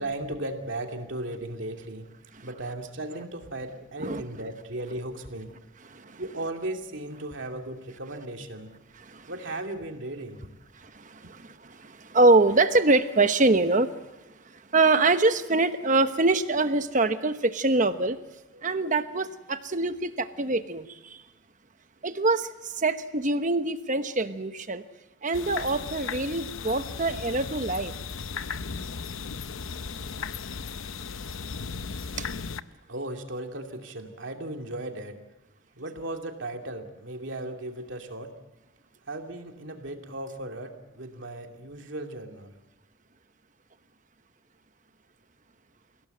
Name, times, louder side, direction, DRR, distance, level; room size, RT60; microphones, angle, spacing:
voice 1, 0.0-2.1 2.4-5.5 6.2-8.7 9.3-10.4 18.5-18.7 31.2-31.3 31.9-32.1 32.9-35.2 35.8-38.3 39.1-42.5, right 1 dB, 65° right, 3 dB, 2.6 m, -36 dB
voice 2, 5.8-6.2 9.0-9.3 10.8-13.9 14.7-18.2 18.6-21.2 22.0-24.8 25.2-27.9 32.2-32.3, right 3 dB, 40° right, 10 dB, 1.0 m, -24 dB
sound 1, 25.3-32.6, left 5 dB, 80° left, 0.8 m, -36 dB
29.5 x 17.5 x 7.9 m, 1.0 s
head